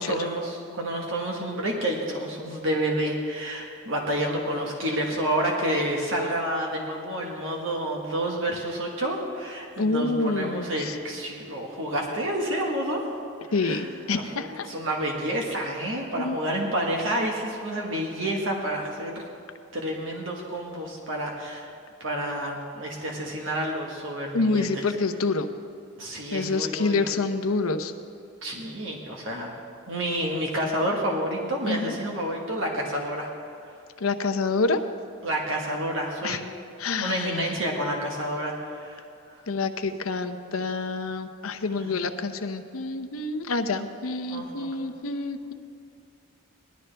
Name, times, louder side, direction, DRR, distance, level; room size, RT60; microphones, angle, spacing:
voice 1, 0.0-13.1 13.6-13.8 14.1-19.3 19.7-21.7 22.0-24.8 26.0-27.1 28.4-29.5 29.9-33.3 35.2-36.4 37.0-39.0 41.8-41.9 44.3-44.7, right 1 dB, 65° right, 0 dB, 1.5 m, -29 dB
voice 2, 9.8-11.0 13.5-14.7 16.1-16.4 24.3-25.5 26.3-27.9 31.7-32.0 34.0-34.8 36.2-36.4 36.8-37.5 39.5-45.5, left 3 dB, 85° left, 8 dB, 0.8 m, -27 dB
18.5 x 12.0 x 3.4 m, 2.5 s
head